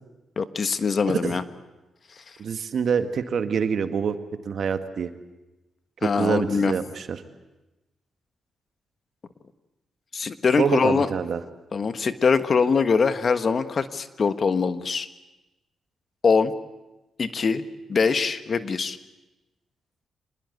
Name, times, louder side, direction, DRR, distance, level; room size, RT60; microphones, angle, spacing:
voice 1, 0.4-1.4 6.0-6.7 10.1-11.1 11.7-15.1 16.2-16.5 17.2-17.6 17.9-19.0, left 5 dB, 50° left, 10 dB, 1.4 m, -23 dB
voice 2, 2.4-4.2 4.4-5.1 6.0-7.2 10.6-11.4, right 6 dB, 65° right, 8 dB, 1.7 m, -26 dB
26.0 x 20.0 x 8.2 m, 1.0 s
supercardioid pair, 60°, 0 cm